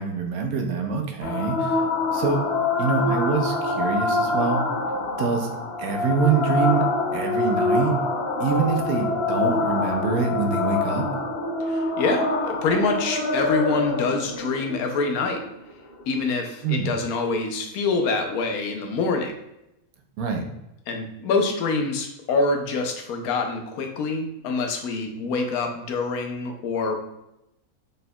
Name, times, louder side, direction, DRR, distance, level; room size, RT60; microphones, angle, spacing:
voice 1, 0.0-1.8 2.1-2.4 2.8-4.6 5.2-5.5 5.8-6.8 7.1-8.0 8.4-11.1 16.6-16.9 20.2-20.4, right 5 dB, 75° right, 4 dB, 1.1 m, -25 dB
sound 1, 1.2-16.2, left 3 dB, 55° left, 0.8 m, -25 dB
voice 2, 11.6-15.4 16.1-19.4 20.9-27.0, left 3 dB, 80° left, 4 dB, 1.1 m, -25 dB
4.1 x 3.8 x 2.2 m, 0.86 s
omnidirectional pair, 1.5 m